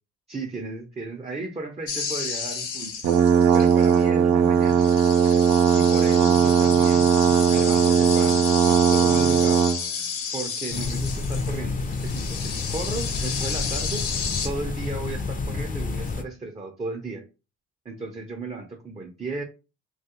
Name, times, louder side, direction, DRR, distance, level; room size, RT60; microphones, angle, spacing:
voice 1, 0.3-2.9 3.5-4.9 5.7-9.6 10.3-14.1 14.4-17.2 17.8-19.4, right 3 dB, 20° right, 2 dB, 0.6 m, -35 dB
sound 1, 1.9-4.1 4.6-11.6 11.9-14.5, left 6 dB, 80° left, 1.1 m, -32 dB
sound 2, 3.0-9.8, right 7 dB, 65° right, 0.5 m, -18 dB
sound 3, 10.7-16.2, left 3 dB, 25° left, 0.5 m, -29 dB
3.0 x 2.4 x 2.9 m, 0.30 s
cardioid pair, 90°, 30 cm